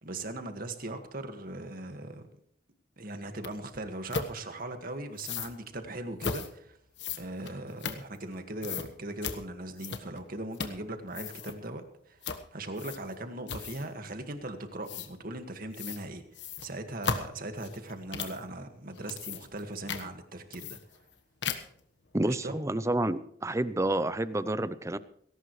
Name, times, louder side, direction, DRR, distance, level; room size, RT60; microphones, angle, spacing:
voice 1, 0.0-2.3 3.0-6.8 7.2-12.2 12.5-16.2 16.6-20.8 22.2-22.5, right 1 dB, 50° right, 7 dB, 1.9 m, -39 dB
sound 1, 3.4-3.5 4.1-4.3 5.2-5.5 6.2-6.5 7.0-8.3 8.6-8.9 9.2-9.4 9.8-10.2 10.5-10.8 11.1-11.6 12.2-12.4 12.8-13.1 13.5-13.9 14.9-15.1 15.7-16.0 16.3-18.4 18.9-19.6 19.9-20.0 20.5-21.1 21.4-21.8, left 5 dB, 70° left, 1.4 m, -36 dB
voice 2, 22.1-25.0, right 1 dB, 15° right, 15 dB, 0.6 m, -29 dB
19.0 x 17.5 x 3.2 m, 0.68 s
head